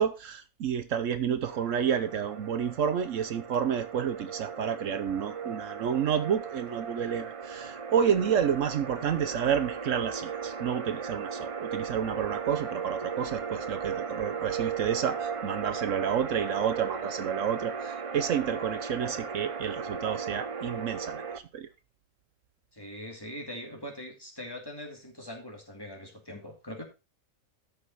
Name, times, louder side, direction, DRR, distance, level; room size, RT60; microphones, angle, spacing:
voice 1, 0.0-21.7, right 8 dB, 70° right, 1.1 m, -30 dB
sound 1, 1.4-21.4, right 6 dB, 40° right, 0.5 m, -36 dB
voice 2, 22.7-26.8, equal, 15° left, 2.3 m, -42 dB
12.5 x 5.5 x 4.0 m
omnidirectional pair, 1.4 m